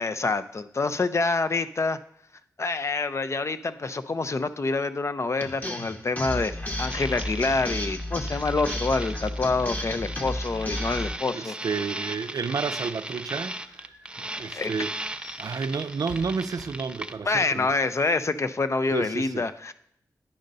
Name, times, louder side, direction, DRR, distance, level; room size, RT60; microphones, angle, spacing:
voice 1, 0.0-2.0 2.6-11.5 14.5-14.7 17.2-19.7, left 3 dB, 45° left, 0.5 m, -27 dB
sound 1, 5.4-11.1, left 1 dB, 25° left, 1.0 m, -32 dB
sound 2, 6.7-17.1, right 1 dB, 15° right, 0.5 m, -37 dB
voice 2, 11.2-13.9 14.2-14.9 15.4-17.7 18.9-19.5, right 5 dB, 70° right, 0.4 m, -31 dB
sound 3, 13.2-17.4, left 2 dB, 65° left, 3.2 m, -50 dB
10.0 x 5.3 x 4.0 m
cardioid pair, 50°, 7 cm